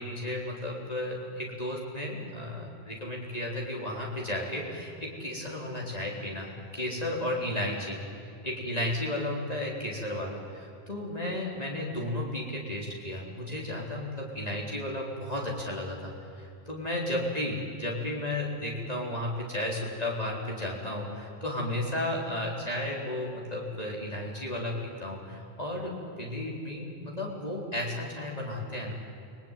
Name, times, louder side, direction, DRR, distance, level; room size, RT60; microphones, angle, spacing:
voice 1, 0.0-8.0 8.4-16.1 16.4-25.9 26.2-28.9, left 1 dB, 40° left, -2 dB, 4.2 m, -33 dB
29.5 x 21.0 x 9.2 m, 2.6 s
omnidirectional pair, 1.1 m